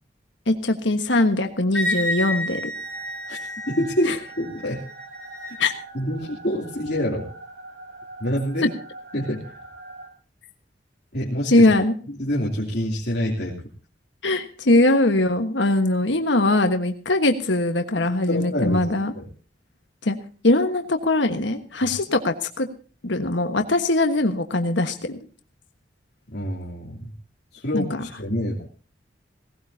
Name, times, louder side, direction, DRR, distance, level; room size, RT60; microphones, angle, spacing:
voice 1, 0.5-2.6 4.1-4.2 5.6-5.7 11.5-11.9 14.2-19.1 20.0-20.2 20.4-22.7 23.0-25.2 27.7-28.0, left 2 dB, 90° left, 6 dB, 1.4 m, -21 dB
Wind instrument woodwind instrument, 1.7-5.6, left 1 dB, 5° left, 2.1 m, -30 dB
sound 1, 2.7-10.1, right 3 dB, 65° right, 5.8 m, -43 dB
voice 2, 3.3-4.8 5.5-5.6 5.9-7.3 8.2-8.7 9.1-9.5 11.1-11.7 12.1-13.6 18.3-18.8 19.2-19.3 26.3-27.1 27.5-28.7, equal, 60° left, -3 dB, 2.9 m, -27 dB
18.0 x 17.5 x 2.8 m, 0.38 s
head